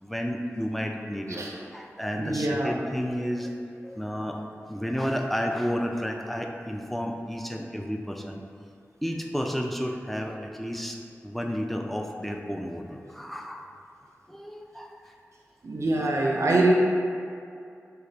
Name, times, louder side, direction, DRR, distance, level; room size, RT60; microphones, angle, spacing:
voice 1, 0.0-1.4 1.7-4.4 4.7-8.4 9.0-13.6 14.3-14.9, equal, 5° left, 2 dB, 0.3 m, -32 dB
voice 2, 2.1-2.7 15.6-16.7, right 2 dB, 65° right, -2 dB, 0.4 m, -24 dB
3.3 x 2.3 x 3.8 m, 2.4 s
wide cardioid pair, 70°, 5 cm